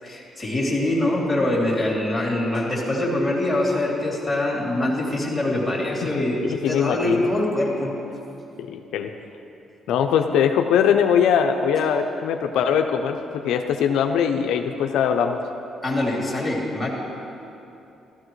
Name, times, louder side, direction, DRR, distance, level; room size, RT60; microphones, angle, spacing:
voice 1, 0.0-8.0 15.8-16.9, left 1 dB, 10° left, -4 dB, 3.0 m, -24 dB
voice 2, 6.5-7.2 8.6-9.1 9.9-15.4, left 7 dB, 85° left, 5 dB, 0.5 m, -21 dB
15.0 x 13.0 x 3.1 m, 2.8 s
cardioid pair, 90°, 0 cm